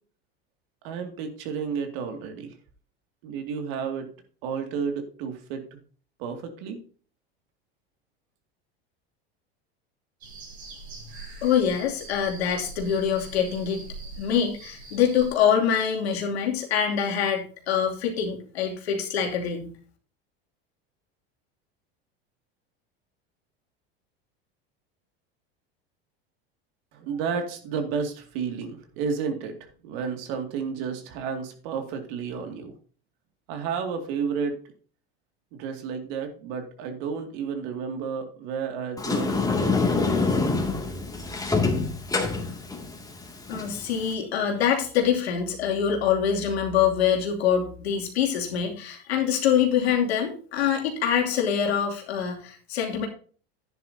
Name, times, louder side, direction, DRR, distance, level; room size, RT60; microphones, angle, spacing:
voice 1, 0.8-2.5 3.2-4.1 4.4-5.8 6.2-6.8 26.9-32.7 33.5-34.6 35.6-39.9, right 6 dB, 65° right, 5 dB, 2.4 m, -32 dB
sound 1, 10.2-15.3, right 3 dB, 85° right, 5.0 m, -43 dB
voice 2, 11.4-13.9 14.2-19.7 43.5-53.1, left 8 dB, 85° left, 1 dB, 2.8 m, -25 dB
Sliding door, 39.0-44.1, left 3 dB, 10° left, 2.4 m, -26 dB
11.0 x 10.0 x 2.8 m, 0.41 s
hypercardioid pair, 100°, 31 cm